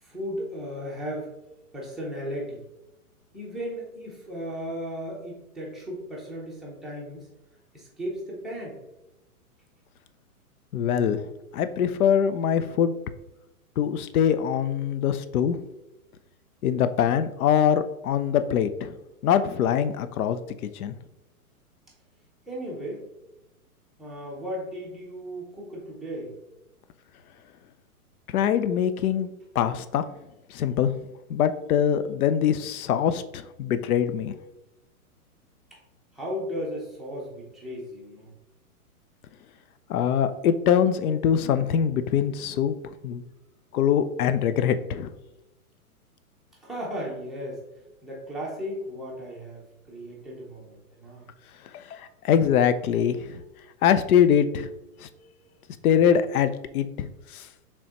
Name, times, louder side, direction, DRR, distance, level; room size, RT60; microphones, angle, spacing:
voice 1, 0.0-1.3 1.7-2.6 3.3-7.3 7.7-8.8 22.5-23.1 24.0-26.3 35.7-35.8 36.1-38.3 46.6-47.6 48.0-51.3 53.3-53.4 55.1-55.6, equal, ahead, -5 dB, 0.5 m, -36 dB
voice 2, 10.7-11.2 11.5-12.9 13.8-15.6 16.6-18.9 19.2-20.4 20.7-20.9 28.3-29.3 29.6-30.0 30.5-30.9 31.3-34.3 39.9-42.7 43.0-43.2 43.7-45.1 51.7-53.4 53.8-54.7 55.0-55.1 55.8-57.1 57.3-57.4, left 8 dB, 70° left, 12 dB, 0.6 m, -23 dB
5.2 x 3.5 x 2.9 m, 0.95 s
hypercardioid pair, 135°, 46 cm